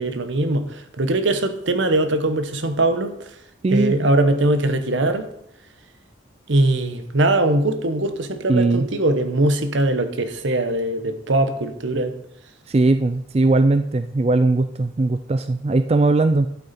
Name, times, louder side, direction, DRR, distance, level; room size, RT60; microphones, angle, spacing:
voice 1, 0.0-3.3 3.7-5.3 6.5-12.1, right 2 dB, 75° right, 1.0 m, -21 dB
voice 2, 3.6-4.0 8.5-8.9 12.7-16.5, right 2 dB, 30° right, 0.3 m, -19 dB
12.0 x 8.5 x 4.3 m
head